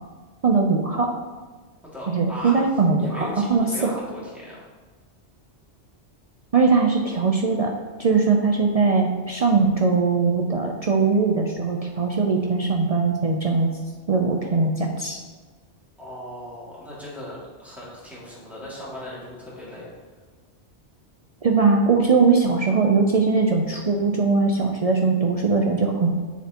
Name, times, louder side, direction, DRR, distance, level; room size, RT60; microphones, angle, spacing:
voice 1, 0.4-1.1 2.1-3.9 6.5-7.7 8.0-13.7 14.1-15.2 21.4-26.1, right 4 dB, 55° right, 1 dB, 0.4 m, -20 dB
voice 2, 1.8-2.6 3.0-4.6 16.0-19.9, equal, ahead, -8 dB, 2.1 m, -37 dB
7.5 x 6.7 x 2.9 m, 1.4 s
omnidirectional pair, 1.2 m